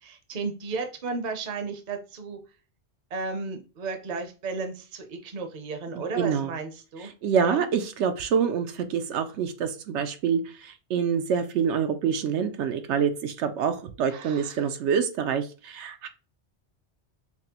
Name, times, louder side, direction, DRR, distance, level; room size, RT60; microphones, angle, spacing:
voice 1, 0.0-2.4 3.1-7.1 7.4-7.7 14.1-14.7, right 4 dB, 45° right, 6 dB, 0.7 m, -34 dB
voice 2, 6.2-6.5 7.2-16.1, right 7 dB, 80° right, 7 dB, 0.9 m, -26 dB
5.8 x 2.0 x 2.8 m, 0.33 s
omnidirectional pair, 1.2 m